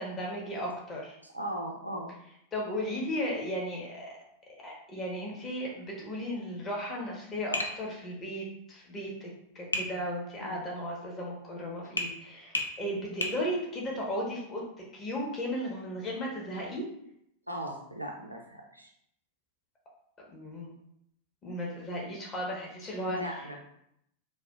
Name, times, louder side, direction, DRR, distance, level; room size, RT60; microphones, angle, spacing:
voice 1, 0.0-1.1 2.5-4.1 4.6-9.3 9.5-14.6 14.9-16.9 20.3-20.7 21.4-23.3, equal, 25° left, -2 dB, 1.1 m, -35 dB
voice 2, 1.2-2.1 9.7-10.0 10.4-10.7 12.8-13.2 17.5-18.9 23.1-23.6, equal, 90° right, 0 dB, 0.5 m, -39 dB
Tap, 7.5-7.8 9.7-9.9 12.0-12.1 12.5-12.7 13.2-13.4, left 2 dB, 75° left, 0.4 m, -31 dB
4.7 x 2.3 x 2.3 m, 0.76 s
figure-of-eight pair, 90°, 0 cm